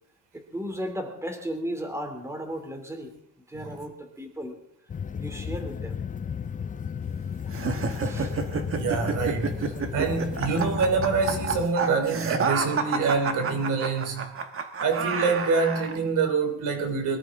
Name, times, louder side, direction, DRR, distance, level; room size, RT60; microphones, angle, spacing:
voice 1, 0.3-3.1 3.5-4.5 5.2-5.9 8.0-8.3, equal, 10° right, 2.9 m, -35 dB
voice 2, 3.5-3.8 8.5-14.3 14.8-17.2, right 4 dB, 80° right, 3.2 m, -26 dB
sound 1, 4.9-11.7, left 7 dB, 25° left, 0.5 m, -34 dB
sound 2, 7.5-16.0, right 5 dB, 45° right, 1.4 m, -30 dB
22.5 x 13.5 x 3.7 m
cardioid pair, 125°, 31 cm